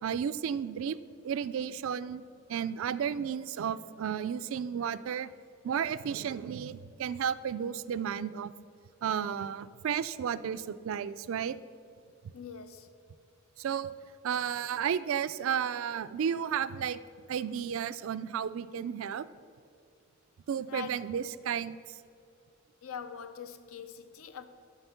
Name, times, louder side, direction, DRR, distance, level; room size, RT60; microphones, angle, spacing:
voice 1, 0.0-1.0 1.2-2.2 2.5-5.3 5.6-8.5 9.0-11.6 13.6-13.9 14.2-17.0 17.3-19.3 20.5-22.0, right 8 dB, 70° right, 16 dB, 0.3 m, -33 dB
voice 2, 12.3-12.9 20.7-21.1 22.8-24.4, left 7 dB, 80° left, 10 dB, 0.6 m, -43 dB
7.9 x 6.0 x 5.7 m, 2.3 s
head